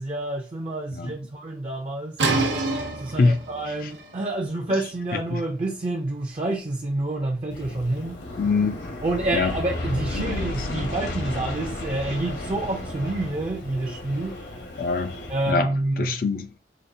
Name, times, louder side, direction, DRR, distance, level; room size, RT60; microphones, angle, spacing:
voice 1, 0.0-2.2 3.0-8.2 9.0-14.4 15.3-16.2, right 2 dB, 30° right, 0.4 m, -28 dB
sound 1, 2.2-7.8, right 3 dB, 75° right, 0.8 m, -30 dB
Aircraft, 7.5-15.5, left 1 dB, 70° left, 1.0 m, -33 dB
voice 2, 8.4-8.8 9.3-9.6 10.1-10.9 14.8-15.2 15.5-16.5, left 4 dB, 50° left, 0.3 m, -25 dB
5.0 x 2.3 x 2.6 m
head